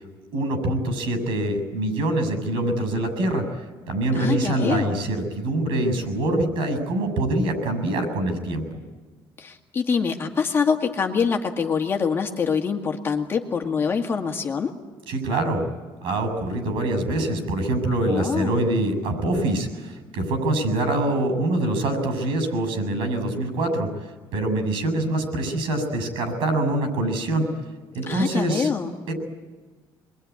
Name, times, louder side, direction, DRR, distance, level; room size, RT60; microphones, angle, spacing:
voice 1, 0.3-3.4 3.9-8.6 15.1-15.6 16.0-23.9 24.3-27.5 27.9-28.7 29.1-29.2, right 1 dB, 80° right, 9 dB, 7.2 m, -24 dB
voice 2, 4.1-5.0 9.4-14.7 18.1-18.6 28.1-28.9, left 6 dB, 25° left, 3 dB, 2.0 m, -25 dB
27.0 x 22.0 x 9.6 m, 1.3 s
cardioid pair, 175°, 9 cm